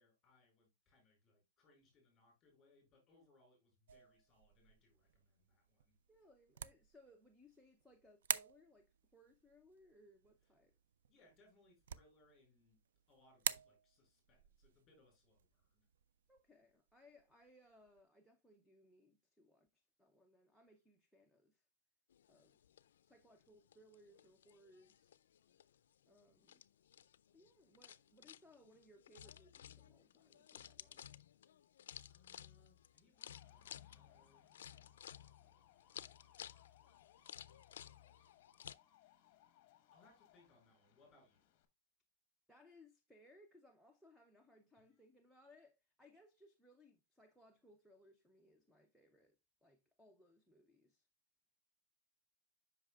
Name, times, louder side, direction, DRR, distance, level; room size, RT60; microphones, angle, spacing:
voice 1, 0.0-6.0 11.1-12.8 13.1-15.9 32.1-35.7 39.9-41.6 44.9-45.0, left 2 dB, 15° left, 4.5 m, -72 dB
sound 1, 3.9-18.0, right 8 dB, 80° right, 0.4 m, -49 dB
voice 2, 6.1-10.7 16.3-21.6 22.3-22.6 23.0-25.1 26.1-26.6 27.3-31.1 42.5-51.1, left 1 dB, ahead, 0.5 m, -66 dB
sound 2, 22.1-38.7, left 10 dB, 85° left, 0.3 m, -57 dB
sound 3, 33.1-41.6, left 11 dB, 35° left, 0.9 m, -68 dB
8.0 x 5.7 x 2.3 m
supercardioid pair, 170°, 0 cm